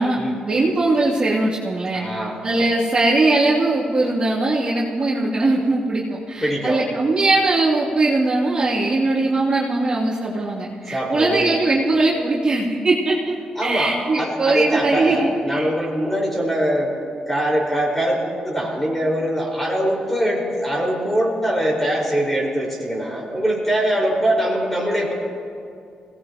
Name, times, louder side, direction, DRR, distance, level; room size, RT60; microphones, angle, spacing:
voice 1, 0.0-2.0 2.4-13.4 13.6-15.7, right 2 dB, 40° right, -7 dB, 2.9 m, -20 dB
voice 2, 1.9-2.7 6.4-6.9 10.9-11.5 13.6-16.9 17.3-25.1, equal, 10° left, -3 dB, 5.2 m, -22 dB
24.0 x 18.5 x 3.1 m, 2.3 s
cardioid pair, 90°, 2 cm